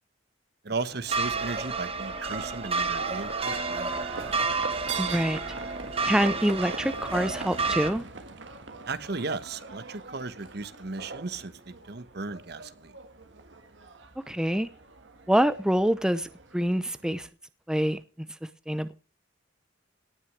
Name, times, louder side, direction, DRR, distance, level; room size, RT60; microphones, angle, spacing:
voice 1, 0.6-4.1 8.9-12.9, right 3 dB, 60° right, 1.1 m, -36 dB
Livestock farm animals working animals, 0.8-17.3, right 4 dB, 80° right, 1.7 m, -41 dB
sound 1, 1.1-7.9, right 4 dB, 30° right, 1.3 m, -31 dB
voice 2, 5.0-5.4 6.0-8.0 14.3-14.7 15.3-17.3 17.7-18.0 18.7-18.9, equal, 5° right, 0.6 m, -25 dB
18.0 x 6.3 x 6.0 m
head